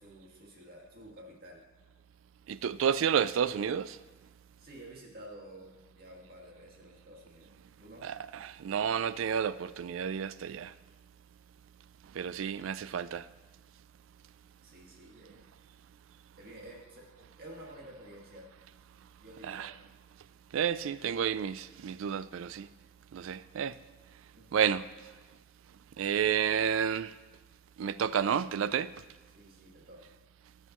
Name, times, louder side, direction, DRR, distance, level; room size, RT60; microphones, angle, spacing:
voice 1, 0.0-1.7 4.6-7.5 7.8-8.1 14.6-15.4 16.4-18.5 19.2-19.7 24.3-24.6 29.3-30.1, right 1 dB, 50° right, 2.0 m, -51 dB
voice 2, 2.5-4.0 8.0-10.7 12.1-13.2 19.4-19.7 20.5-22.7 23.1-23.7 24.5-24.8 26.0-27.1 27.8-28.9, right 8 dB, 70° right, 0.3 m, -30 dB
19.0 x 6.6 x 3.0 m
head